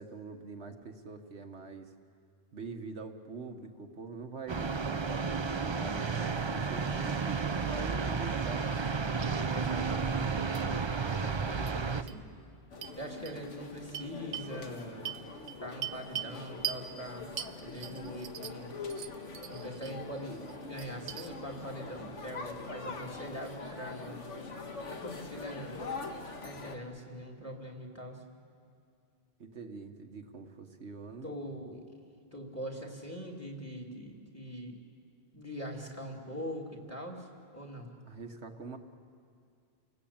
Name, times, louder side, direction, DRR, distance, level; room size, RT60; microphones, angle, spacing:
voice 1, 0.0-1.9 2.5-8.8 29.4-31.3 38.1-38.8, right 4 dB, 70° right, 4 dB, 1.5 m, -44 dB
sound 1, 4.5-12.0, right 5 dB, 30° right, 0.6 m, -32 dB
Indoor Beer Bottle Dishes Noises Various Miscellaneous, 8.7-8.9 9.2-9.3 10.5-10.6 11.7-11.8 12.1-12.2 12.8-12.9 13.2-13.3 13.9-14.5 15.0-16.3 16.6-16.8 17.4-18.6 18.9-19.9 20.3-21.3, right 10 dB, 90° right, 1.1 m, -40 dB
voice 2, 9.5-10.3 11.0-12.2 13.0-15.0 15.6-18.7 19.5-24.2 24.9-25.9 26.4-28.2 31.2-31.8 32.3-34.8 35.3-37.3 37.5-37.9, equal, 10° left, 0 dB, 3.1 m, -42 dB
sound 2, 12.7-26.8, left 4 dB, 85° left, 2.0 m, -43 dB
29.5 x 19.0 x 8.7 m, 2.3 s
omnidirectional pair, 1.2 m